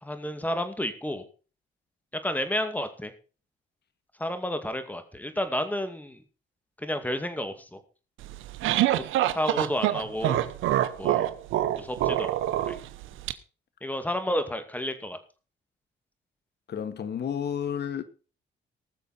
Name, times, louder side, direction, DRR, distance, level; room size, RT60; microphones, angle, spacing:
voice 1, 0.0-1.2 2.2-3.1 4.2-6.2 6.8-7.8 9.3-10.4 11.0-11.3 11.8-12.3 12.7-12.8 13.8-15.2, left 1 dB, 10° left, 2.3 m, -31 dB
sound 1, 8.2-13.3, right 13 dB, 90° right, 0.9 m, -26 dB
voice 2, 16.7-18.0, left 8 dB, 55° left, 1.6 m, -31 dB
19.5 x 6.7 x 4.3 m
cardioid pair, 90°, 20 cm